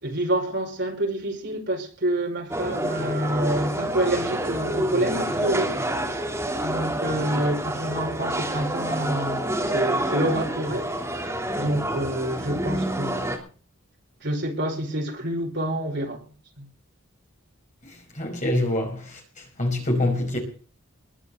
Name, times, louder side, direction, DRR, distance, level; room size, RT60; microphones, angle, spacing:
voice 1, 0.0-5.8 6.6-13.4 14.2-16.2 16.6-16.7, right 1 dB, 55° right, 5.0 m, -28 dB
sound 1, 2.5-13.4, right 1 dB, 10° right, 3.2 m, -28 dB
voice 2, 18.2-19.0 19.6-20.4, left 1 dB, 35° left, 5.3 m, -24 dB
21.0 x 7.0 x 7.9 m
head